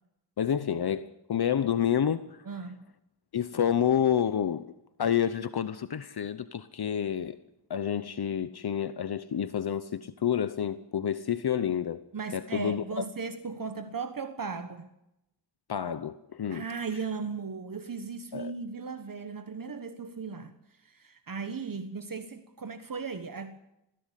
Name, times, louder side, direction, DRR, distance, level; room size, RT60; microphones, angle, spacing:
voice 1, 0.4-2.5 3.3-4.7 5.0-7.4 7.7-12.0 12.3-13.0 15.7-16.6 18.3-18.5, left 9 dB, 60° left, 0.9 m, -29 dB
voice 2, 2.4-2.8 12.1-14.9 16.5-23.6, right 5 dB, 50° right, 1.3 m, -37 dB
20.5 x 16.0 x 8.2 m
wide cardioid pair, 150°, 43 cm